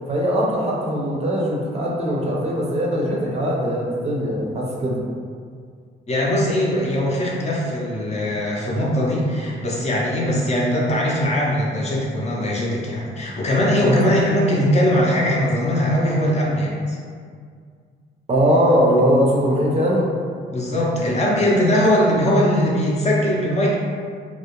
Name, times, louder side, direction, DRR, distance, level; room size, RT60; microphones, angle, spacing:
voice 1, 0.1-5.0 13.8-13.9 18.3-20.1, equal, 30° right, -3 dB, 0.5 m, -20 dB
voice 2, 6.1-17.0 20.5-23.7, left 1 dB, 35° left, -4 dB, 0.5 m, -20 dB
2.3 x 2.0 x 2.9 m, 2.1 s
cardioid pair, 90°, 20 cm